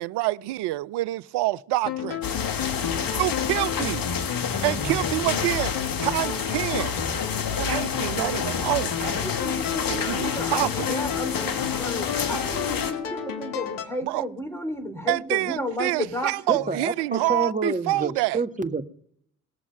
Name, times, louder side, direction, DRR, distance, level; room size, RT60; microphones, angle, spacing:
voice 1, 0.0-2.2 3.1-4.1 4.6-5.7 6.0-6.9 7.6-9.2 9.8-11.0 14.0-14.3 15.1-18.4, right 17 dB, 65° right, 0.6 m, -27 dB
sound 1, 1.8-13.9, left 8 dB, 80° left, 1.4 m, -32 dB
sound 2, 2.2-12.9, left 6 dB, 50° left, 1.6 m, -29 dB
voice 2, 9.2-16.6, left 1 dB, 5° left, 3.9 m, -33 dB
voice 3, 16.5-18.8, right 3 dB, 15° right, 1.5 m, -28 dB
19.0 x 7.2 x 9.1 m
hypercardioid pair, 45°, 43 cm